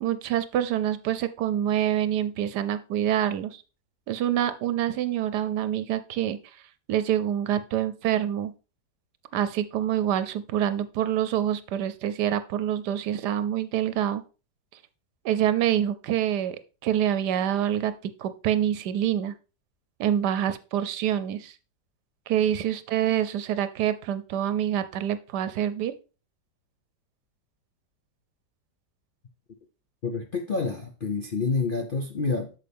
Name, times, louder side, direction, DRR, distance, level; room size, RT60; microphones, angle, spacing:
voice 1, 0.0-3.6 4.1-6.4 6.9-8.5 9.3-14.2 15.2-16.6 16.8-17.9 18.2-19.3 20.0-21.5 22.3-25.9, right 10 dB, 75° right, 1.2 m, -26 dB
voice 2, 30.0-32.5, left 4 dB, 55° left, 0.6 m, -28 dB
8.5 x 6.6 x 3.5 m
omnidirectional pair, 1.9 m